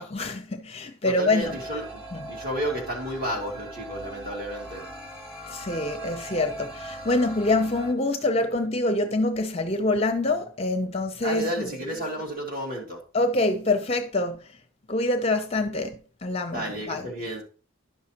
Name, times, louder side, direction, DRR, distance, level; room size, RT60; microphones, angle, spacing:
voice 1, 0.0-1.6 2.1-2.3 5.5-11.7 13.1-14.6 14.9-17.0, left 2 dB, 25° left, 0.5 m, -26 dB
voice 2, 1.0-1.9 2.3-4.8 11.2-13.0 16.5-17.4, equal, 40° right, 2.5 m, -31 dB
sound 1, 1.4-7.9, right 1 dB, 5° right, 1.8 m, -40 dB
11.0 x 6.2 x 2.9 m
head